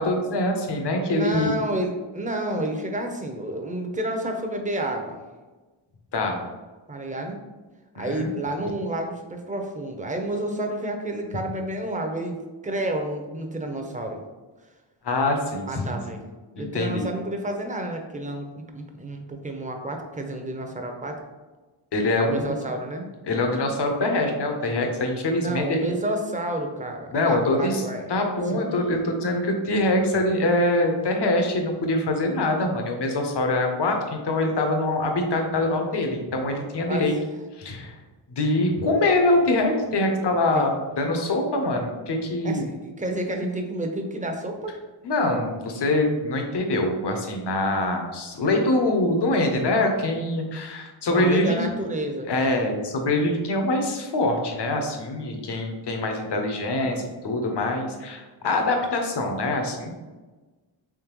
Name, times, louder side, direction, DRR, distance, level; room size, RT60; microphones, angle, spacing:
voice 1, 0.0-1.5 6.1-6.4 8.0-8.3 15.0-16.0 16.6-17.1 21.9-22.5 23.2-25.9 27.1-27.8 28.1-37.1 37.6-38.0 38.3-42.7 45.0-51.6 52.3-59.9, left 2 dB, 55° left, 3 dB, 0.8 m, -24 dB
voice 2, 1.1-5.2 6.9-7.4 8.0-12.4 12.6-14.2 15.7-21.2 22.2-23.1 25.4-28.0 28.5-29.3 36.9-37.2 40.5-40.7 42.4-44.8 51.1-52.5, right 1 dB, 15° right, 3 dB, 0.6 m, -30 dB
3.6 x 3.2 x 3.0 m, 1.2 s
cardioid pair, 60°, 48 cm